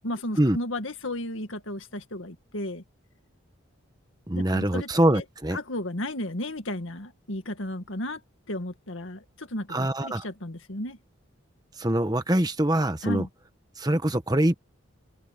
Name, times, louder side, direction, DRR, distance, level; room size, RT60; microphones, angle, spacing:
voice 1, 0.0-2.8 4.3-5.2 5.5-8.2 8.5-11.0 13.0-13.3, left 1 dB, 70° left, 2.0 m, -34 dB
voice 2, 4.3-5.6 9.7-10.2 11.8-13.3 13.8-14.6, right 1 dB, 20° right, 1.3 m, -24 dB
open air
head